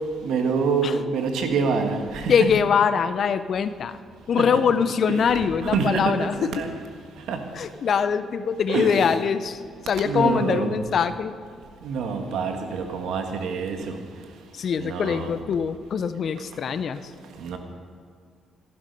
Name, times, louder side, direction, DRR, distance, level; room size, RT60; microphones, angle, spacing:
voice 1, 0.2-2.5 4.4-4.6 5.1-6.7 7.3-7.4 8.7-9.0 10.0-10.8 11.8-14.0 14.8-15.3 17.4-17.6, right 5 dB, 80° right, 5 dB, 1.5 m, -26 dB
voice 2, 2.3-4.0 4.3-6.5 7.6-9.6 9.9-11.3 14.6-17.1, left 6 dB, 55° left, 12 dB, 0.6 m, -23 dB
15.0 x 11.0 x 5.4 m, 2.2 s
cardioid pair, 90°, 0 cm